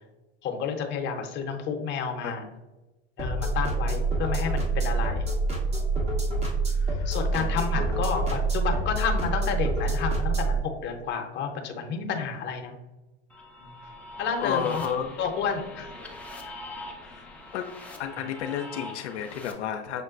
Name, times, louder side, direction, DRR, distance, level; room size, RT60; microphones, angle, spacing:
voice 1, 0.4-2.4 3.2-5.3 6.0-6.4 7.1-12.7 13.6-13.7 14.2-14.9 15.2-15.9 16.5-16.6, left 6 dB, 35° left, 3 dB, 0.7 m, -31 dB
sound 1, 3.2-10.6, right 3 dB, 20° right, 0.8 m, -26 dB
voice 2, 6.7-8.0 13.8-13.9 14.4-15.2 17.0-17.2 17.5-17.7 18.0-20.0, left 8 dB, 80° left, 5 dB, 0.5 m, -33 dB
sound 2, 13.3-19.5, left 1 dB, 5° left, 0.4 m, -42 dB
6.5 x 2.2 x 2.4 m, 1.1 s
hypercardioid pair, 100°, 34 cm